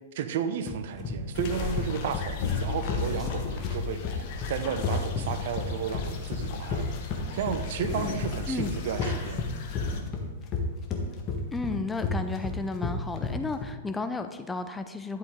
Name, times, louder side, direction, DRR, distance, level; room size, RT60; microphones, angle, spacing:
voice 1, 0.1-9.4, right 8 dB, 55° right, 9 dB, 0.8 m, -33 dB
sound 1, 0.7-13.6, left 4 dB, 30° left, 1.5 m, -32 dB
sound 2, 1.3-10.0, left 7 dB, 45° left, 1.2 m, -35 dB
voice 2, 11.5-15.2, left 3 dB, 10° left, 8 dB, 0.6 m, -33 dB
11.0 x 7.8 x 3.7 m, 1.3 s
figure-of-eight pair, 105°, 0 cm